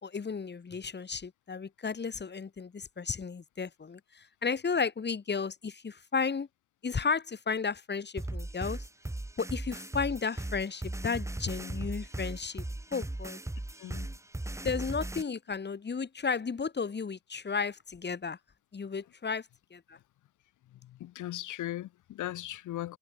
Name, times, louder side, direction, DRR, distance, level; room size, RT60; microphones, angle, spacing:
voice 1, 0.0-6.5 6.8-8.9 9.4-12.6 12.9-13.4 14.6-18.4 18.7-20.0, left 5 dB, 35° left, 4.2 m, -33 dB
sound 1, 8.2-15.2, right 1 dB, 10° right, 2.5 m, -37 dB
voice 2, 13.8-14.1 20.8-23.0, left 14 dB, 80° left, 2.0 m, -38 dB
cardioid pair, 90°, 30 cm